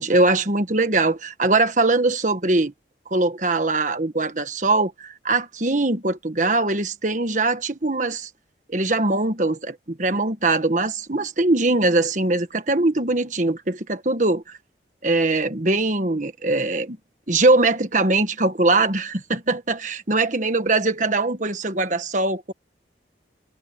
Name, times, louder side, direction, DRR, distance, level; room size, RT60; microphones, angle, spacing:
voice 1, 0.0-2.7 3.1-8.3 8.7-14.4 15.0-17.0 17.3-22.5, right 2 dB, 40° right, 1.5 m, -21 dB
head